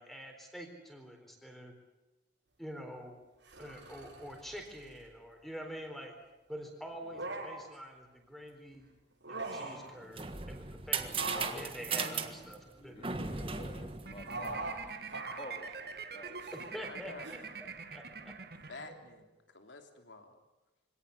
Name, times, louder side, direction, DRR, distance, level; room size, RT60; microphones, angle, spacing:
voice 1, 0.0-1.7 2.6-3.2 3.6-6.1 6.5-8.9 9.3-13.2 16.5-18.3, equal, ahead, 3 dB, 4.1 m, -46 dB
sound 1, 3.5-5.1 6.9-7.8 9.1-9.9 11.1-12.9 14.3-14.8 15.1-15.6 16.3-16.7 17.2-17.4, right 2 dB, 90° right, 7.6 m, -42 dB
sound 2, 9.8-14.9, right 5 dB, 30° right, 1.5 m, -37 dB
voice 2, 11.2-11.7 12.0-12.3 12.8-16.4, left 1 dB, 35° left, 6 dB, 2.3 m, -50 dB
sound 3, 14.0-19.3, right 5 dB, 55° right, 1.6 m, -45 dB
voice 3, 16.6-17.3 18.7-19.3 19.5-20.4, left 3 dB, 80° left, 5 dB, 3.3 m, -49 dB
25.0 x 18.0 x 8.4 m, 1.1 s
head